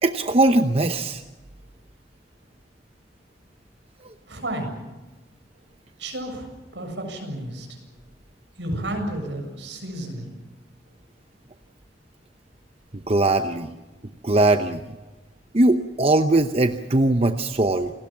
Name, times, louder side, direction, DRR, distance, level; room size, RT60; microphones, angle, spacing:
voice 1, 0.0-1.2 13.1-13.7 14.2-14.8 15.5-17.9, right 2 dB, 35° right, 8 dB, 0.8 m, -20 dB
voice 2, 4.3-4.8 6.0-7.7 8.6-10.3, right 1 dB, 80° right, 4 dB, 7.3 m, -32 dB
28.5 x 20.0 x 7.4 m, 1.1 s
head